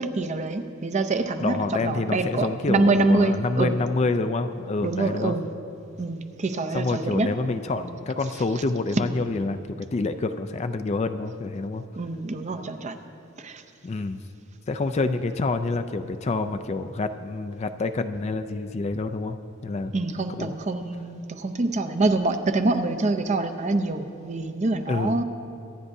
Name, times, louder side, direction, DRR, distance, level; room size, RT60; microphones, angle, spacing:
voice 1, 0.0-3.8 4.8-5.5 6.0-7.3 12.0-13.0 13.4-13.6 19.9-25.2, right 2 dB, 35° right, 8 dB, 0.6 m, -25 dB
voice 2, 1.4-5.4 6.7-11.8 13.8-14.2 14.7-19.4 19.6-19.9 20.4-20.5 24.9-25.2, left 3 dB, 30° left, 9 dB, 0.4 m, -27 dB
25.0 x 9.8 x 2.7 m, 2.8 s
head